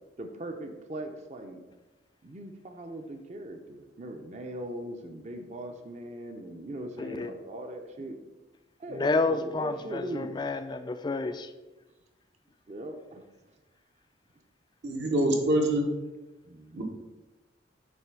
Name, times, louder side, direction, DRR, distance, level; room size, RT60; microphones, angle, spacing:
voice 1, 0.2-1.6 2.2-8.2 8.8-10.3 12.7-13.2 16.4-16.8, right 1 dB, 40° right, 5 dB, 0.6 m, -40 dB
voice 2, 7.0-7.3 9.0-11.5, left 3 dB, 25° left, 9 dB, 0.3 m, -29 dB
voice 3, 14.8-15.9 16.7-16.8, right 1 dB, 70° right, 2 dB, 1.2 m, -25 dB
7.7 x 3.2 x 6.1 m, 1.1 s
head